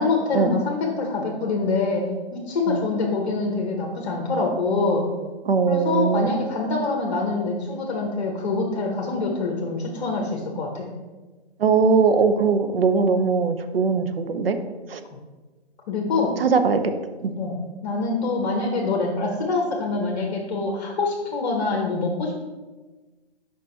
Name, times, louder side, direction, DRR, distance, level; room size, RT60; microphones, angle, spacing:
voice 1, 0.0-5.1 5.7-10.9 15.9-16.4 17.4-17.5 17.8-22.4, left 3 dB, 40° left, 0 dB, 1.1 m, -25 dB
voice 2, 5.5-6.3 11.6-14.6 14.9-15.0 16.4-16.9 17.2-17.3, right 5 dB, 65° right, 8 dB, 0.7 m, -20 dB
5.2 x 5.2 x 4.4 m, 1.2 s
figure-of-eight pair, 140°, 32 cm